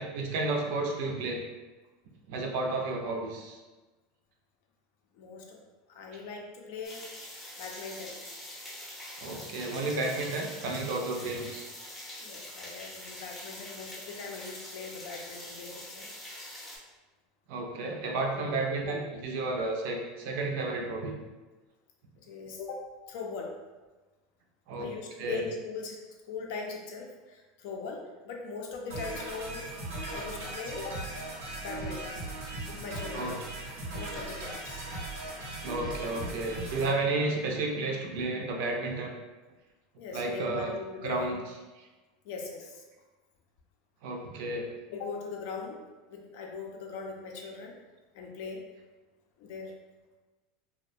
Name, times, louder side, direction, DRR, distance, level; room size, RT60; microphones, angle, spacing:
voice 1, 0.0-1.4 2.3-3.6 9.2-11.7 17.5-21.2 24.7-24.9 25.2-25.4 33.1-33.3 35.6-39.1 40.1-40.7 41.0-41.4 44.0-44.7, right 2 dB, 65° right, 0 dB, 0.5 m, -32 dB
voice 2, 5.1-5.6 5.9-7.1 7.6-8.2 12.2-16.1 18.4-19.0 22.2-23.5 24.8-26.0 26.3-29.6 30.1-31.0 31.6-32.2 32.6-33.4 33.9-34.8 40.0-41.4 42.2-42.8 44.9-45.8 46.1-47.7 48.1-48.6 49.4-49.7, left 4 dB, 65° left, 1 dB, 0.5 m, -40 dB
sound 1, 6.8-16.8, left 1 dB, 10° left, 0.6 m, -44 dB
sound 2, 28.9-36.9, right 2 dB, 90° right, 0.8 m, -38 dB
2.3 x 2.1 x 2.6 m, 1.2 s
supercardioid pair, 140°, 0 cm